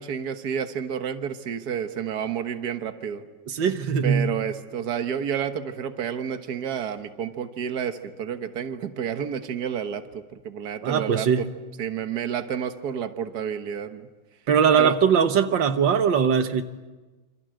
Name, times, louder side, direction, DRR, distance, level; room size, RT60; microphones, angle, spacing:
voice 1, 0.0-3.2 4.0-11.5 11.8-14.1 14.8-14.9, right 8 dB, 60° right, 1.8 m, -30 dB
voice 2, 3.5-4.3 10.8-11.4 14.5-16.6, right 7 dB, 85° right, 1.9 m, -21 dB
27.0 x 27.0 x 7.9 m
omnidirectional pair, 2.0 m